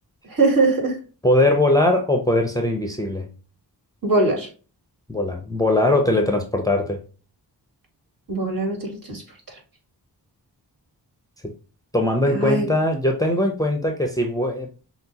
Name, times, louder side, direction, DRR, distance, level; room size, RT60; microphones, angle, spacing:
voice 1, 0.3-1.0 4.0-4.5 8.3-9.2 12.3-12.7, right 2 dB, 50° right, 2.1 m, -21 dB
voice 2, 1.2-3.3 5.1-7.0 11.9-14.7, left 1 dB, 10° left, 0.8 m, -20 dB
6.0 x 2.2 x 2.9 m
cardioid pair, 60°, 43 cm